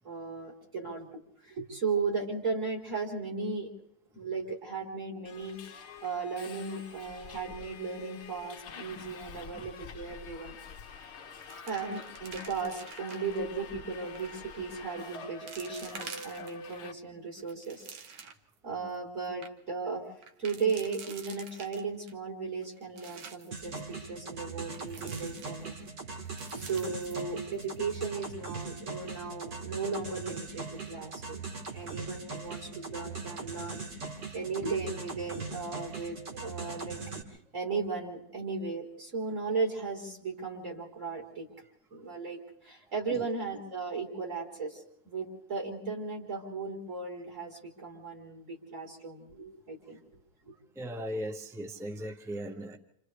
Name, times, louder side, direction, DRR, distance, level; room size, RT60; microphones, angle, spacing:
voice 1, 0.0-1.1 1.4-3.7 4.1-10.6 11.7-17.8 18.6-25.7 26.1-31.4 31.7-33.8 34.3-37.0 37.5-41.5 41.9-50.0 50.5-50.6, right 4 dB, 40° right, -3 dB, 4.6 m, -36 dB
Subway metro underground, 5.2-16.9, left 4 dB, 45° left, 0.9 m, -46 dB
sound 1, 10.7-11.0 11.3-13.4 14.0-14.4 15.0-15.1 15.5-16.8 17.3-18.5 18.9-19.0 19.2-19.5 20.2-22.1 22.6-23.6 24.7-25.9 26.3-27.8 28.0-28.1 28.6-28.9, right 6 dB, 75° right, 1.9 m, -48 dB
sound 2, 23.5-37.2, right 4 dB, 60° right, 2.9 m, -40 dB
voice 2, 50.8-52.8, equal, 5° right, 5 dB, 0.3 m, -38 dB
29.0 x 28.0 x 3.3 m, 0.72 s
omnidirectional pair, 2.1 m